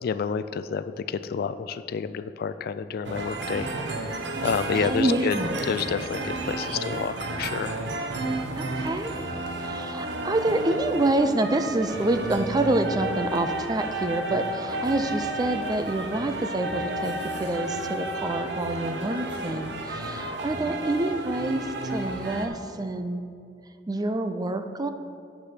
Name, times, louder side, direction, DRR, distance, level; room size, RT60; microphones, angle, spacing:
voice 1, 0.0-5.4 5.6-7.8, left 6 dB, 55° left, 13 dB, 0.3 m, -29 dB
sound 1, 3.0-22.5, right 2 dB, 70° right, 0.9 m, -32 dB
voice 2, 4.7-5.5 8.5-9.1 9.6-23.3 23.9-24.9, right 2 dB, 20° right, 8 dB, 0.5 m, -27 dB
8.2 x 6.4 x 5.9 m, 2.4 s
head